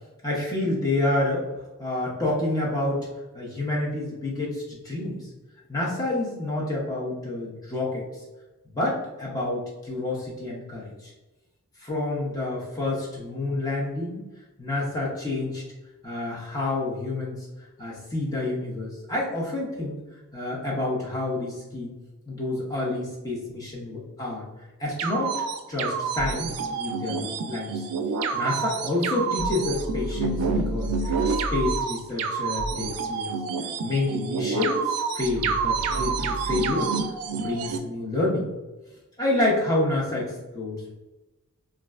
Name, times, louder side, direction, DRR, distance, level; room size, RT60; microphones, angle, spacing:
voice 1, 0.2-1.5 1.8-3.1 3.3-5.3 5.7-8.0 8.7-11.1 11.8-14.2 14.6-15.6 16.0-17.5 17.8-20.0 20.3-21.9 22.3-24.5 24.8-25.3 25.7-27.8 28.3-31.2 31.5-33.3 33.8-36.9 37.3-38.5 39.2-40.9, left 2 dB, 15° left, -5 dB, 0.5 m, -28 dB
sound 1, 25.0-37.8, right 5 dB, 85° right, 0.3 m, -28 dB
sound 2, 29.7-31.8 35.2-36.7, equal, 70° left, 0.8 m, -33 dB
3.1 x 2.4 x 2.3 m, 1.1 s
head